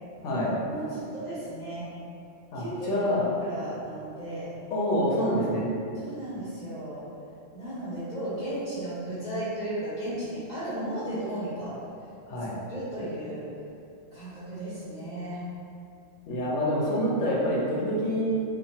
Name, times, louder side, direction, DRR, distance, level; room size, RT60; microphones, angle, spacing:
voice 1, 0.6-1.9 2.5-4.5 5.9-7.1 7.5-11.7 12.7-13.5 14.1-15.5, right 1 dB, 40° left, -14 dB, 0.9 m, -35 dB
voice 2, 2.5-3.3 4.7-5.7 12.3-12.5 16.3-18.2, equal, 80° left, -5 dB, 1.0 m, -26 dB
2.9 x 2.2 x 2.7 m, 2.6 s
omnidirectional pair, 1.2 m